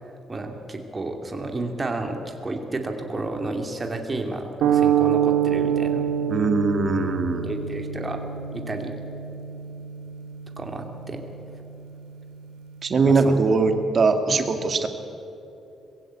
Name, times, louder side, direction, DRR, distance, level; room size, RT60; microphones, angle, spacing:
voice 1, 0.0-6.1 7.4-8.2 8.5-8.9 10.6-11.2 13.1-13.4 14.3-14.4, right 2 dB, 25° right, 4 dB, 2.7 m, -31 dB
sound 1, 4.6-13.0, right 8 dB, 85° right, 1.8 m, -27 dB
voice 2, 6.3-7.5 12.8-14.9, right 4 dB, 45° right, 7 dB, 2.1 m, -21 dB
21.5 x 16.0 x 8.9 m, 3.0 s
cardioid pair, 90°, 0 cm